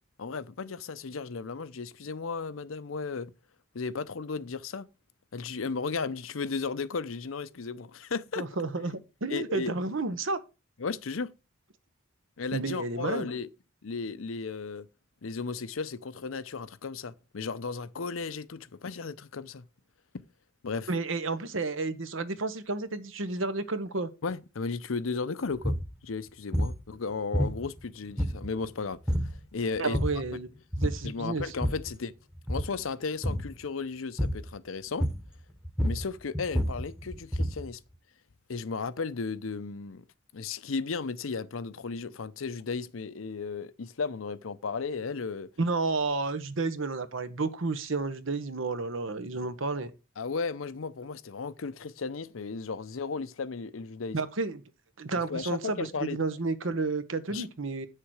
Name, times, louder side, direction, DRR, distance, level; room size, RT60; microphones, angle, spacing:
voice 1, 0.2-3.3 3.7-4.9 5.3-8.5 9.3-9.7 10.8-11.3 12.4-13.5 13.8-14.9 15.2-19.7 20.6-20.9 24.2-25.8 26.0-29.0 29.5-30.0 31.0-32.1 32.5-35.1 35.8-37.8 38.5-40.0 40.3-45.5 50.2-54.2 55.3-56.2 57.3-57.5, left 4 dB, 85° left, 0.7 m, -35 dB
voice 2, 8.4-10.4 12.5-13.3 20.9-24.1 29.8-30.5 30.8-31.5 45.6-49.9 54.1-54.6 55.0-57.9, right 3 dB, 75° right, 1.0 m, -31 dB
sound 1, 25.6-25.9 26.5-26.8 27.3-27.8 28.2-28.7 29.1-29.4 29.8-30.3 30.7-31.1 31.4-31.9 32.4-32.8 33.2-33.5 34.2-34.5 35.0-35.4 35.6-37.7, equal, 5° right, 1.0 m, -29 dB
9.0 x 6.7 x 4.8 m
head